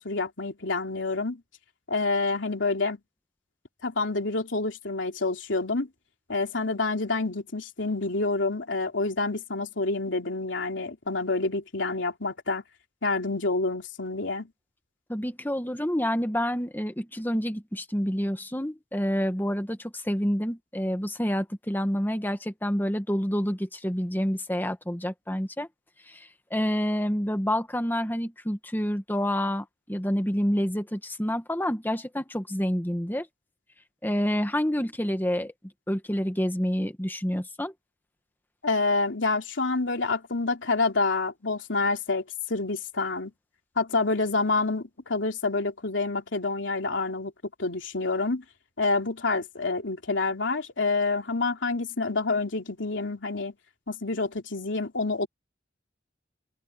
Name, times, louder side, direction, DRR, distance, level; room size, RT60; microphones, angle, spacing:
voice 1, 0.0-1.4 1.9-3.0 3.8-5.9 6.3-12.6 13.0-14.5 38.6-43.3 43.8-47.3 47.6-48.4 48.8-53.5 53.9-55.3, left 3 dB, 75° left, 3.2 m, -28 dB
voice 2, 15.1-25.7 26.1-33.3 34.0-35.5 35.9-37.7, equal, 10° left, 1.7 m, -28 dB
head